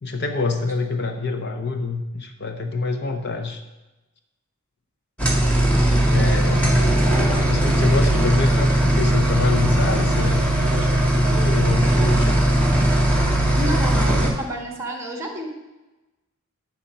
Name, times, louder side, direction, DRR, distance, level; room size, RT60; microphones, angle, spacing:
voice 1, 0.0-3.6 6.1-6.8 7.5-10.4 10.7-12.4, left 3 dB, 50° left, 6 dB, 0.8 m, -26 dB
sound 1, 5.2-14.3, right 1 dB, 5° left, 1.6 m, -18 dB
voice 2, 13.6-15.5, equal, 15° right, 1 dB, 1.8 m, -29 dB
9.7 x 7.3 x 5.4 m, 1.1 s
head